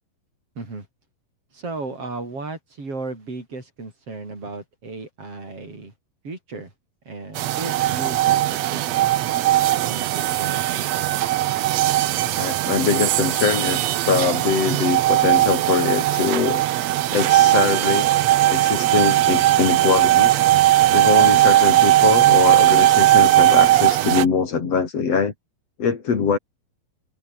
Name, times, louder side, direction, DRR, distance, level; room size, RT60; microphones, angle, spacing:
voice 1, 0.6-0.9 1.5-5.9 6.2-6.7 7.1-9.1 9.9-10.9, right 3 dB, 40° right, 8.0 m, -35 dB
sound 1, 7.4-24.3, right 14 dB, 80° right, 1.5 m, -18 dB
voice 2, 12.3-16.6 17.1-18.1 18.5-20.5 20.9-25.3 25.8-26.4, left 5 dB, 45° left, 4.1 m, -22 dB
omnidirectional pair, 4.3 m